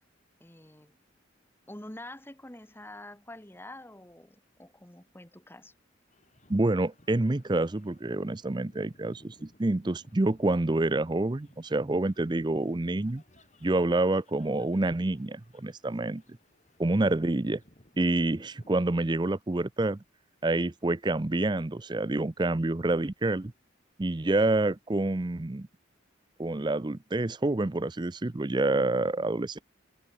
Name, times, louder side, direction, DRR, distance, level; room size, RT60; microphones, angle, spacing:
voice 1, 0.4-1.0 1.7-5.7, left 1 dB, 10° left, 1.7 m, -46 dB
sound 1, 6.1-18.8, left 1 dB, 35° left, 5.8 m, -61 dB
voice 2, 6.5-13.2 13.6-16.2 16.8-17.6 18.0-20.0 20.4-23.5 24.0-25.7 26.4-29.6, right 2 dB, 20° right, 0.5 m, -27 dB
head